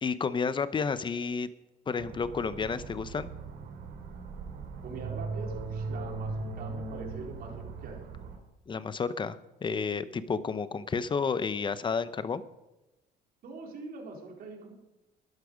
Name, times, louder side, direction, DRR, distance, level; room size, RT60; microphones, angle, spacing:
voice 1, 0.0-1.5 1.9-3.3 8.7-12.4, left 5 dB, 30° left, 14 dB, 0.8 m, -31 dB
sound 1, 2.0-8.4, right 3 dB, 85° right, 3.7 m, -39 dB
voice 2, 4.8-8.0 13.4-14.7, right 4 dB, 60° right, 0 dB, 4.2 m, -43 dB
13.0 x 11.5 x 5.2 m, 1.0 s
cardioid pair, 110°, 17 cm